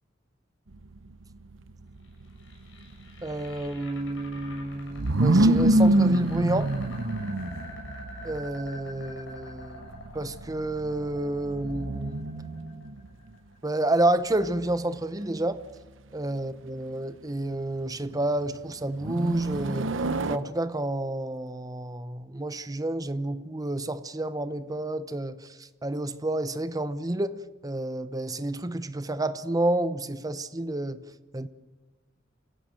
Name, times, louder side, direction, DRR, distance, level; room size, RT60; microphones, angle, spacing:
sound 1, 0.7-13.1 14.4-15.1 19.0-20.4, right 1 dB, 75° right, 0.9 m, -27 dB
sound 2, 2.0-14.1, left 1 dB, 75° left, 7.4 m, -47 dB
voice 1, 3.2-6.7 8.2-9.9 10.1-12.2 13.6-15.6 16.1-19.9 20.3-25.4 25.8-31.0 31.3-31.5, right 1 dB, 20° right, 0.8 m, -29 dB
28.5 x 16.0 x 7.7 m
head